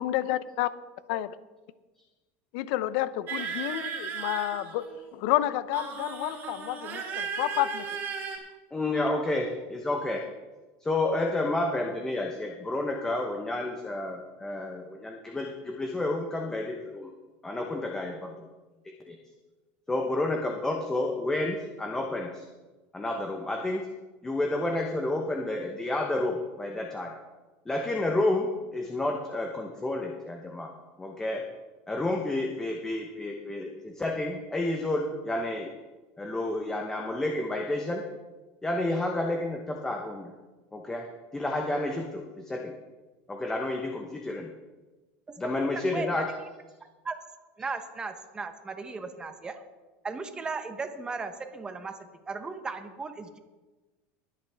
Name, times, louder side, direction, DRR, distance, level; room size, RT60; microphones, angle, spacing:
voice 1, 0.0-0.7 1.1-1.3 2.5-7.8, left 14 dB, 65° left, 15 dB, 0.6 m, -30 dB
sound 1, 3.3-5.1 5.7-8.4, right 6 dB, 40° right, 2.7 m, -36 dB
voice 2, 8.7-10.2 10.8-17.1 17.4-18.3 18.8-19.1 19.9-22.4 22.9-23.9 24.2-27.1 27.7-30.7 31.0-31.4 31.9-35.7 36.2-38.0 38.6-40.3 40.7-41.1 41.3-42.7 43.3-44.5 45.4-46.3, left 2 dB, 10° left, 2 dB, 1.0 m, -30 dB
voice 3, 47.6-49.6 50.0-51.9 52.3-53.4, right 4 dB, 15° right, 7 dB, 0.9 m, -36 dB
21.0 x 8.3 x 3.5 m, 1.2 s
supercardioid pair, 150°, 6 cm